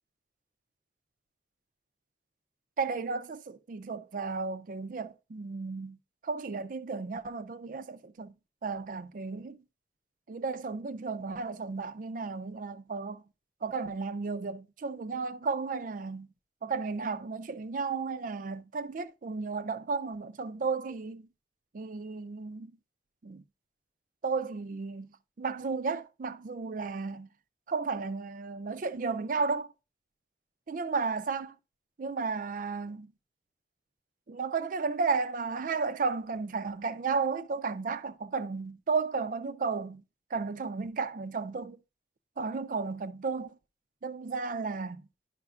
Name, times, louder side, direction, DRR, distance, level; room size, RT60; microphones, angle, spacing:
voice 1, 2.8-6.0 6.2-8.3 8.6-9.6 10.3-13.2 13.6-16.3 16.6-21.3 21.7-22.7 23.2-23.4 24.2-25.1 25.4-27.3 27.7-29.7 30.7-31.5 32.0-33.1 34.3-40.0 40.3-41.8 42.4-43.6 44.0-45.1, right 4 dB, 50° right, 0.4 m, -33 dB
10.5 x 5.7 x 2.4 m
head